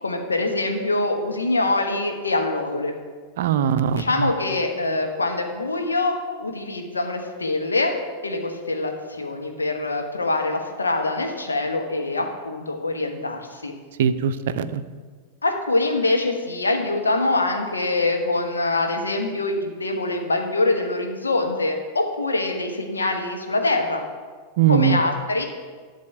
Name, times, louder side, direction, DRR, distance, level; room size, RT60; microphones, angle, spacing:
voice 1, 0.0-2.9 3.9-8.0 8.2-13.7 15.4-24.0 24.7-25.4, left 2 dB, 75° left, 3 dB, 1.3 m, -24 dB
voice 2, 3.4-4.3 14.0-14.8 24.6-25.0, right 8 dB, 55° right, 11 dB, 0.5 m, -21 dB
11.5 x 4.1 x 7.8 m, 1.5 s
figure-of-eight pair, 90°, 0 cm